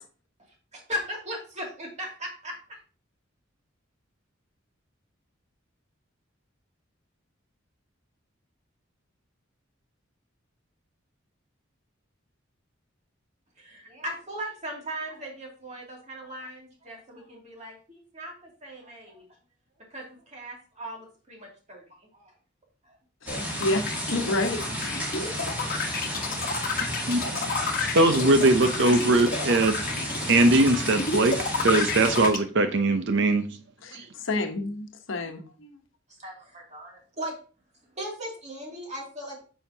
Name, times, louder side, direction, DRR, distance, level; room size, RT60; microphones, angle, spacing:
voice 1, 0.7-2.8 13.6-19.2 19.8-22.4 22.8-23.0 36.1-37.4 37.9-39.4, equal, 35° right, -1 dB, 2.5 m, -38 dB
voice 2, 23.2-24.9 25.2-25.3 33.8-35.7, left 2 dB, 70° left, 5 dB, 1.1 m, -30 dB
sound 1, 23.3-32.4, left 4 dB, 45° left, 1.2 m, -30 dB
sound 2, 23.3-32.3, equal, 10° right, 2.3 m, -32 dB
voice 3, 27.1-27.4 27.9-29.9 30.3-33.4 33.9-34.1, right 2 dB, 60° right, 8 dB, 0.7 m, -21 dB
9.1 x 5.6 x 2.8 m, 0.38 s
head